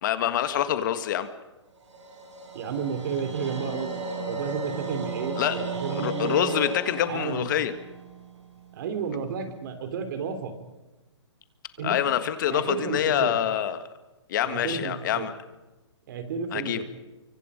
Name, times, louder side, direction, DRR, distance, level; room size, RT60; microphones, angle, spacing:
voice 1, 0.0-1.3 5.4-5.6 5.9-7.7 11.8-13.9 14.3-15.3 16.5-16.8, left 10 dB, 45° left, 10 dB, 1.6 m, -26 dB
sound 1, 1.8-9.0, right 3 dB, 80° right, 5.5 m, -35 dB
voice 2, 2.5-4.0 4.2-6.7 7.1-7.5 8.7-10.5 11.8-12.0 12.5-13.4 14.4-15.3 16.1-16.8, right 6 dB, 45° right, 8 dB, 3.6 m, -32 dB
25.5 x 24.0 x 5.2 m, 1.1 s
hypercardioid pair, 155°, 15 cm